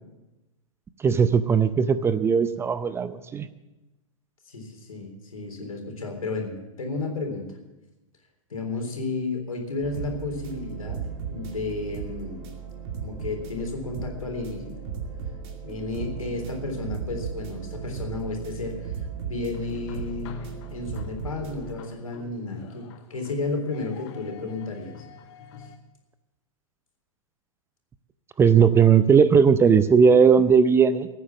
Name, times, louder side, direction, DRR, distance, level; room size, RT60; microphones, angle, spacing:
voice 1, 1.0-3.5 28.4-31.1, right 6 dB, 15° right, 14 dB, 0.5 m, -18 dB
voice 2, 4.5-7.5 8.5-11.0 11.3-12.4 13.0-14.8 15.6-20.4 20.7-25.1 25.6-25.7, left 3 dB, 80° left, 3 dB, 3.7 m, -32 dB
sound 1, 9.8-21.8, right 7 dB, 50° right, 2.4 m, -36 dB
sound 2, 19.5-25.8, left 7 dB, 50° left, 1.4 m, -46 dB
16.0 x 9.3 x 7.2 m, 1.0 s
hypercardioid pair, 110°, 18 cm